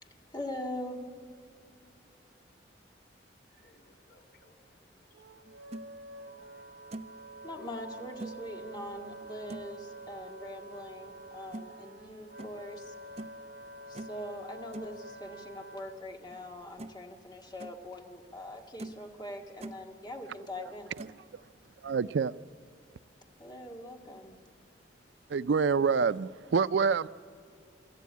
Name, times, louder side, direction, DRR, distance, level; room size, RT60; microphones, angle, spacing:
voice 1, 0.0-1.0 7.4-13.0 13.9-20.9 23.4-24.4, left 1 dB, 25° left, 1.9 m, -42 dB
voice 2, 3.5-5.4 6.1-6.7, left 1 dB, 60° left, 2.6 m, -66 dB
Wind instrument woodwind instrument, 5.1-16.0, right 1 dB, 70° right, 1.0 m, -48 dB
sound 1, 5.4-5.9 6.4-6.5 6.9-7.2 8.2-8.4 9.5-9.8 11.5-11.7 12.4-12.6 13.2-13.4 13.9-14.2 14.7-14.9 16.3-16.4 16.8-17.1 17.4-17.7 18.3-18.4 18.8-19.1 19.4-19.8 21.0-21.2, right 2 dB, 35° right, 0.7 m, -43 dB
voice 3, 21.8-22.3 25.3-27.1, right 5 dB, 90° right, 0.4 m, -26 dB
27.0 x 14.0 x 8.5 m
head